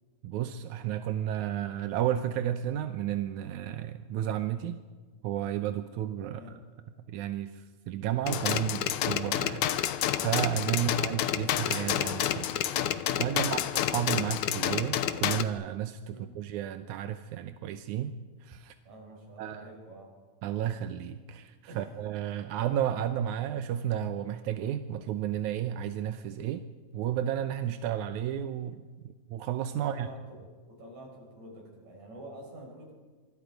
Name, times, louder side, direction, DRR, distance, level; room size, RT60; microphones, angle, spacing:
voice 1, 0.2-4.8 5.2-6.6 7.1-9.7 10.2-12.5 13.1-13.6 13.9-18.1 18.4-18.7 19.4-19.7 20.4-26.6 26.9-30.1, right 10 dB, 85° right, 9 dB, 2.2 m, -32 dB
voice 2, 6.2-6.6 10.7-11.2 13.3-13.6 16.0-16.3 18.8-20.1 21.7-21.9 29.7-30.4 30.7-32.9, right 1 dB, 70° right, 0 dB, 7.1 m, -48 dB
sound 1, 8.3-15.4, left 11 dB, 90° left, 2.3 m, -29 dB
25.0 x 23.5 x 5.2 m, 1.4 s
omnidirectional pair, 3.3 m